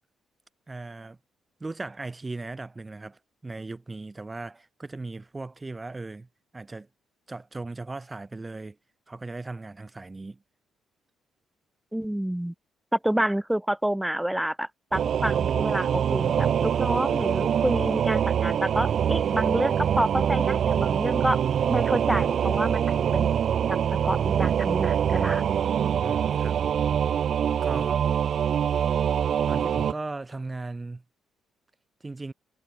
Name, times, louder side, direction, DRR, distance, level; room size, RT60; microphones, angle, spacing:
voice 1, 0.7-1.2 1.6-6.3 6.5-6.9 7.3-8.8 9.1-10.4 26.0-26.6 27.6-28.0 29.4-31.0 32.0-32.3, right 3 dB, 20° right, 1.8 m, -37 dB
voice 2, 11.9-12.5 12.9-21.4 21.7-23.3 23.7-25.4, right 1 dB, 5° right, 1.0 m, -28 dB
Singing / Musical instrument, 14.9-29.9, right 8 dB, 60° right, 0.5 m, -24 dB
cardioid pair, 90°, 0 cm